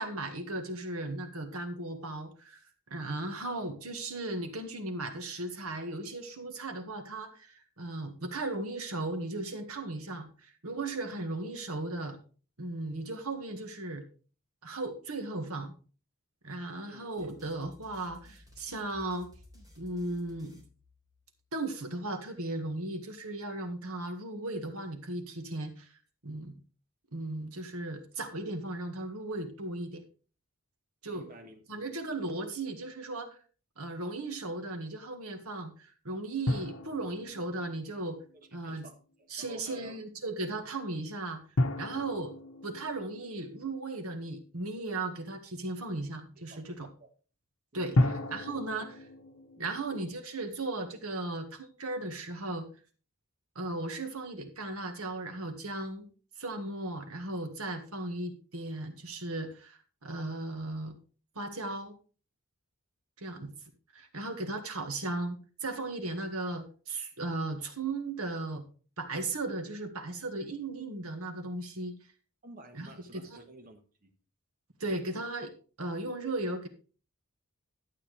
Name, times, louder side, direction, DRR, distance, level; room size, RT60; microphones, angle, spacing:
voice 1, 0.0-2.6 2.9-12.2 12.6-14.0 14.6-15.7 16.4-19.3 19.8-20.6 21.5-25.9 26.2-26.5 27.1-30.0 31.0-31.3 31.7-33.3 33.8-38.2 38.5-38.8 39.3-41.4 41.8-42.3 42.6-46.9 47.7-48.0 48.3-48.9 49.6-52.7 53.5-56.1 56.4-60.9 61.3-61.9 63.2-63.5 63.9-68.6 69.0-71.9 72.7-73.4 74.8-75.5 75.8-76.7, right 2 dB, 80° right, 7 dB, 1.8 m, -36 dB
sound 1, 17.2-21.5, left 2 dB, 20° right, 3.4 m, -57 dB
voice 2, 31.1-31.6 38.6-39.0 39.4-40.0 46.5-46.6 47.0-47.1 47.7-48.2 48.5-48.6 49.6-49.7 72.4-74.1, right 1 dB, 40° right, 4 dB, 1.3 m, -51 dB
sound 2, 36.5-38.7 41.6-44.5 48.0-49.8, left 1 dB, 70° left, 1.0 m, -33 dB
12.0 x 8.4 x 3.4 m, 0.37 s
head